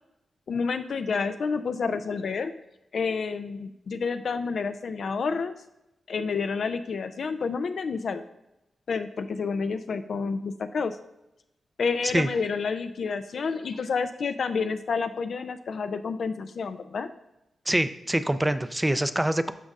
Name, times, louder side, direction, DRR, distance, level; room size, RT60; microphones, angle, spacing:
voice 1, 0.5-2.5 2.9-5.5 6.1-8.2 8.9-11.0 11.8-17.1, left 5 dB, 65° left, 9 dB, 0.3 m, -29 dB
voice 2, 17.7-19.5, right 1 dB, 10° right, 12 dB, 0.4 m, -25 dB
12.5 x 5.2 x 2.4 m, 0.88 s
cardioid pair, 90°, 0 cm